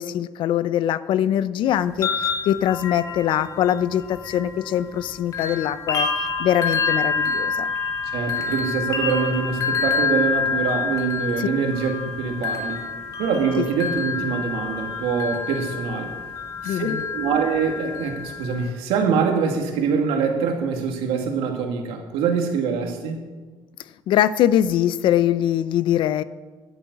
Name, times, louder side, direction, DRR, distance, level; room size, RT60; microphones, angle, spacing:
voice 1, 0.0-6.1 6.4-7.7 11.4-11.5 13.6-13.7 16.6-17.0 24.1-26.2, left 11 dB, 60° left, 15 dB, 0.6 m, -22 dB
sound 1, 1.7-5.0 5.3-18.7, left 5 dB, 35° left, 2.2 m, -27 dB
voice 2, 8.1-12.8 13.2-16.1 16.6-23.3, right 5 dB, 90° right, 3 dB, 2.3 m, -24 dB
11.0 x 8.7 x 8.2 m, 1.3 s
cardioid pair, 145°, 9 cm